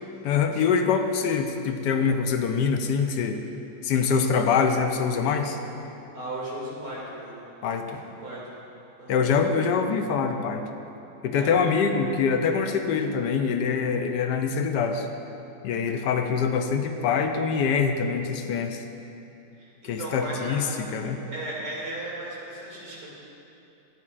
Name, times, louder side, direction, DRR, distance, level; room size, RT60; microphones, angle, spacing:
voice 1, 0.2-3.4 3.8-5.6 7.6-8.0 9.1-10.7 11.2-15.1 15.6-18.8 19.8-21.2, left 6 dB, 80° left, 6 dB, 1.3 m, -24 dB
voice 2, 6.1-7.4 8.0-8.6 9.0-9.2 11.3-11.8 19.6-20.8 21.3-23.1, right 1 dB, 80° right, -6 dB, 3.2 m, -36 dB
15.0 x 9.7 x 2.5 m, 2.9 s
omnidirectional pair, 1.8 m